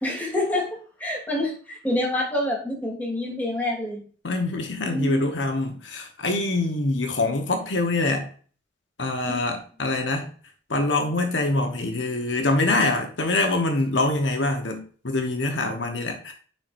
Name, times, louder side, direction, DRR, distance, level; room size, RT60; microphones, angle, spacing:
voice 1, 0.0-0.7 1.0-4.0 4.8-5.3 9.2-9.4, left 1 dB, 10° left, 2.8 m, -27 dB
voice 2, 4.2-8.3 9.0-10.3 10.7-16.3, left 2 dB, 75° left, 1.2 m, -25 dB
10.5 x 4.6 x 2.6 m
head